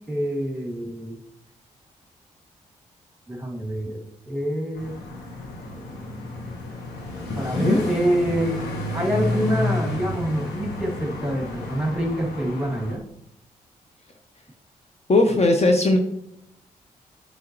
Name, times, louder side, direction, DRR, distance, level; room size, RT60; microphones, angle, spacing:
voice 1, 0.1-1.2 3.3-5.0 7.4-8.6 8.9-13.0, equal, 5° right, 0 dB, 2.4 m, -26 dB
sound 1, 4.8-13.0, left 2 dB, 90° left, 1.3 m, -31 dB
voice 2, 7.3-7.8 15.1-16.0, left 2 dB, 40° left, 4 dB, 0.9 m, -19 dB
8.3 x 5.4 x 3.0 m, 0.76 s
supercardioid pair, 45°, 16 cm